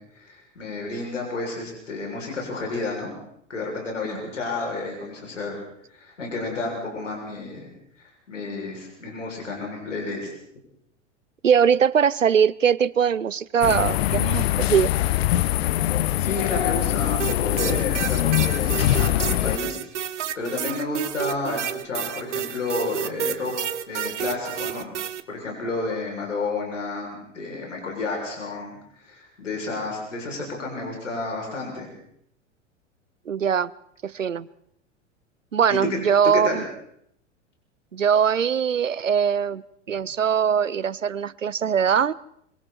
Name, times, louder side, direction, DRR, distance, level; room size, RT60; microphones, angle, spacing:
voice 1, 0.0-3.1 3.5-5.6 5.9-7.7 8.0-10.3 16.2-19.8 20.4-23.5 23.9-24.9 25.3-31.9 35.7-36.0 36.3-36.7, left 3 dB, 75° left, -1 dB, 7.3 m, -31 dB
voice 2, 11.4-14.9 33.3-33.7 34.0-34.5 35.5-36.6 37.9-42.1, right 7 dB, 85° right, 21 dB, 0.7 m, -21 dB
sound 1, 13.6-19.6, left 14 dB, 55° left, 0.9 m, -23 dB
sound 2, 17.2-25.2, right 10 dB, 70° right, 1.3 m, -30 dB
25.5 x 24.0 x 4.5 m, 0.72 s
figure-of-eight pair, 90°, 37 cm